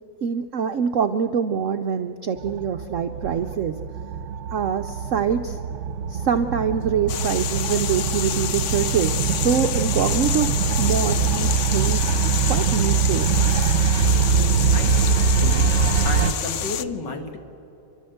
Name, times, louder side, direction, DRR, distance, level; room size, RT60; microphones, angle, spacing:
voice 1, 0.2-3.7 4.5-5.6 6.1-9.1 9.4-10.5 10.8-12.0 12.5-13.3, right 7 dB, 70° right, 7 dB, 0.7 m, -24 dB
sound 1, 2.4-16.3, right 6 dB, 50° right, 1.0 m, -23 dB
sound 2, 7.1-16.8, left 9 dB, 85° left, 0.6 m, -28 dB
voice 2, 14.4-15.6 16.0-17.4, left 3 dB, 65° left, 5 dB, 2.3 m, -32 dB
29.0 x 12.0 x 7.8 m, 2.9 s
omnidirectional pair, 2.1 m